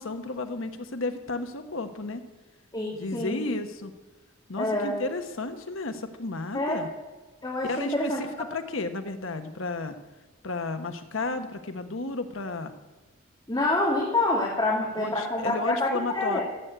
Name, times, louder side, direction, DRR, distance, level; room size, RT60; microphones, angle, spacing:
voice 1, 0.0-2.2 2.9-3.9 4.5-6.9 7.7-9.9 10.4-12.7 15.0-16.4, left 3 dB, 70° left, 8 dB, 1.1 m, -33 dB
voice 2, 2.7-3.4 4.6-4.9 6.5-6.8 7.4-8.2 13.5-16.4, left 2 dB, 20° left, -3 dB, 2.3 m, -27 dB
15.5 x 8.2 x 9.0 m, 1.2 s
head